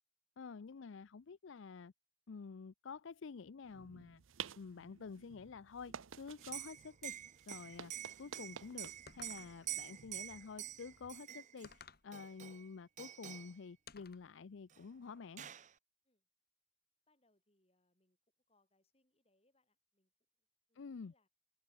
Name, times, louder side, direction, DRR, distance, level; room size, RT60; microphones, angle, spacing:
voice 1, 0.4-1.9 2.3-4.2 4.6-7.2 7.5-7.9 8.2-15.4 20.8-21.1, left 5 dB, 65° left, 0.5 m, -49 dB
sound 1, 3.6-11.2, right 8 dB, 75° right, 0.7 m, -53 dB
Liquid, 6.4-11.7 12.1-12.7 13.0-13.5 14.7-14.8 15.1-15.7, right 12 dB, 35° right, 0.6 m, -47 dB
sound 2, 9.1-9.7 11.6-12.1 13.9-14.3, left 5 dB, 50° left, 2.1 m, -57 dB
voice 2, 9.6-10.2 16.0-16.3 17.1-18.2 18.5-20.1 20.4-21.3, left 2 dB, 30° left, 6.6 m, -80 dB
head